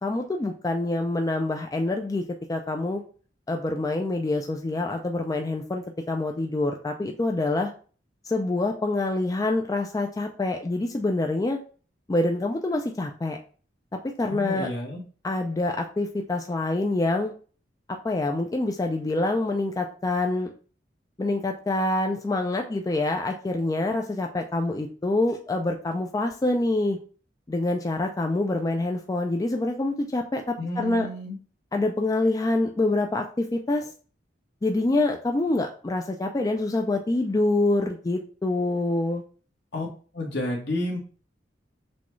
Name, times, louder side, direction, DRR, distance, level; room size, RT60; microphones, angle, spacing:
voice 1, 0.0-2.2 2.5-3.0 3.5-7.7 8.3-11.6 12.1-13.4 14.0-14.7 15.2-17.3 18.0-20.5 21.2-27.0 27.5-30.4 30.8-31.1 31.7-33.9 34.6-39.2, left 2 dB, 20° left, 3 dB, 0.3 m, -26 dB
voice 2, 14.3-15.0 30.6-31.4 39.7-39.9 40.1-41.0, left 1 dB, 65° left, -1 dB, 1.4 m, -30 dB
6.1 x 2.3 x 3.1 m, 0.40 s
head